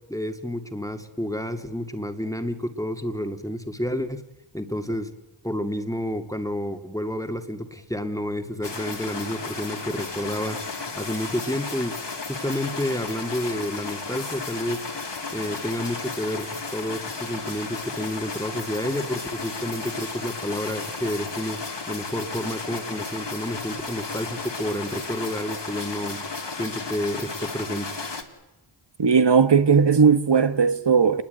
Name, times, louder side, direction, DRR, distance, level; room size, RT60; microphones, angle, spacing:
voice 1, 0.1-4.2 4.5-5.1 5.4-10.6 10.9-12.0 12.3-14.8 15.3-21.6 21.9-26.2 26.5-27.9, left 1 dB, 5° left, 2.2 m, -30 dB
sound 1, 8.6-28.2, left 4 dB, 60° left, 3.1 m, -34 dB
voice 2, 29.0-31.2, right 6 dB, 60° right, 1.6 m, -17 dB
28.5 x 21.5 x 9.2 m
wide cardioid pair, 60°, 47 cm